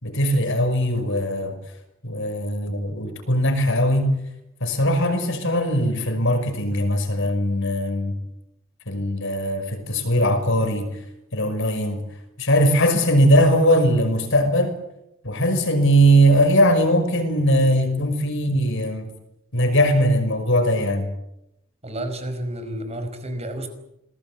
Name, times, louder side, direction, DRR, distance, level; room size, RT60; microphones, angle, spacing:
voice 1, 0.0-1.5 2.0-4.2 4.6-8.1 8.9-10.9 11.3-12.0 12.4-14.7 15.2-19.1 19.5-21.1, equal, 60° left, 8 dB, 5.7 m, -20 dB
voice 2, 21.8-23.7, right 1 dB, 30° right, 8 dB, 5.0 m, -30 dB
27.5 x 21.0 x 8.7 m, 0.82 s
head